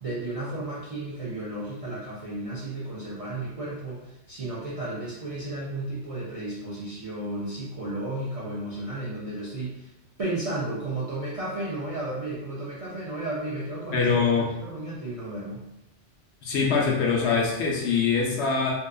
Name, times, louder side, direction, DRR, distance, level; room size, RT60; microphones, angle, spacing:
voice 1, 0.0-9.9 10.2-15.6, right 2 dB, 55° right, -8 dB, 0.4 m, -33 dB
voice 2, 13.9-14.5 16.4-18.7, left 5 dB, 70° left, -2 dB, 0.8 m, -23 dB
2.7 x 2.3 x 2.2 m, 0.93 s
omnidirectional pair, 1.2 m